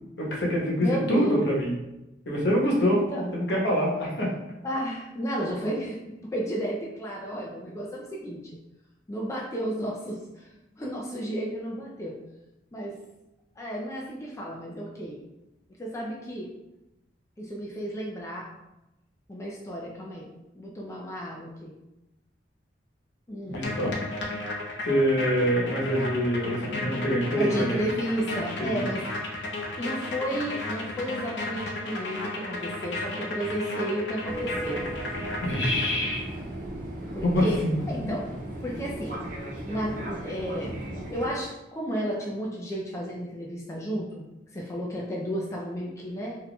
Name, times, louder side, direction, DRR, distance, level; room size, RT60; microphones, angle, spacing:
voice 1, 0.2-1.7 2.3-3.0 3.3-4.3 23.5-23.9 24.8-27.9 28.6-28.8 35.4-36.2 37.2-38.1, equal, 70° left, -4 dB, 1.0 m, -25 dB
voice 2, 0.8-1.5 2.9-3.3 4.6-8.4 9.1-10.5 10.7-12.2 12.7-13.0 13.6-15.2 15.8-16.5 17.4-18.5 19.3-20.3 20.5-21.7 23.3-23.6 27.4-29.0 29.8-34.9 37.1-37.6 37.9-38.3 38.6-39.2 39.6-40.8 41.1-44.2 44.5-46.4, equal, 15° left, -3 dB, 0.4 m, -32 dB
sound 1, 23.5-36.3, left 2 dB, 90° left, 0.6 m, -34 dB
Fixed-wing aircraft airplane, 34.3-41.3, right 1 dB, 50° right, 0.9 m, -36 dB
4.1 x 2.7 x 2.2 m, 0.95 s
head